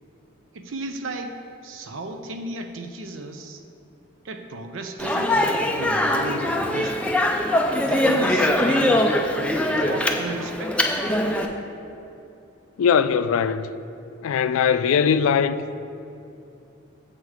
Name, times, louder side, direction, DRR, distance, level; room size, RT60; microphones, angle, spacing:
voice 1, 0.5-3.6 4.2-7.0 7.9-11.0, right 2 dB, 70° right, 0.6 m, -34 dB
Speech, 5.0-11.5, left 1 dB, 5° left, 0.4 m, -22 dB
voice 2, 12.8-13.7 14.2-15.8, left 7 dB, 85° left, 0.3 m, -20 dB
7.4 x 6.5 x 4.8 m
head